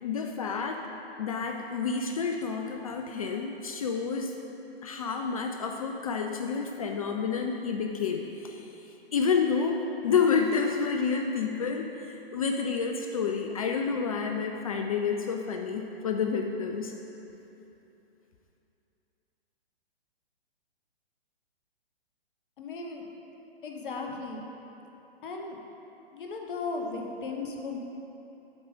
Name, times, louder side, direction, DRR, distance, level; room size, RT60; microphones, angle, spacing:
voice 1, 0.0-0.8 1.2-4.4 4.8-8.5 9.1-16.9, left 5 dB, 35° left, 3 dB, 0.4 m, -29 dB
voice 2, 22.6-23.1 23.6-24.5 25.2-25.6 26.1-27.8, left 3 dB, 55° left, 1 dB, 1.1 m, -36 dB
7.8 x 4.7 x 5.3 m, 2.9 s
figure-of-eight pair, 125°, 31 cm